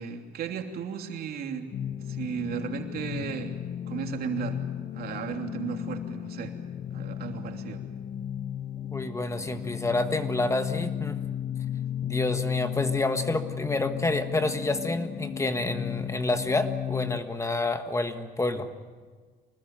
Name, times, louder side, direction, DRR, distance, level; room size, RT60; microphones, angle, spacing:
voice 1, 0.0-1.7 2.1-3.6 3.9-4.6 4.9-6.5 6.9-7.8, right 7 dB, 65° right, 3 dB, 3.0 m, -35 dB
sound 1, 1.7-17.2, left 10 dB, 40° left, 0.7 m, -34 dB
voice 2, 8.9-11.2 12.0-18.7, left 2 dB, 15° left, 8 dB, 1.5 m, -28 dB
25.5 x 20.0 x 9.0 m, 1.5 s
cardioid pair, 110°, 17 cm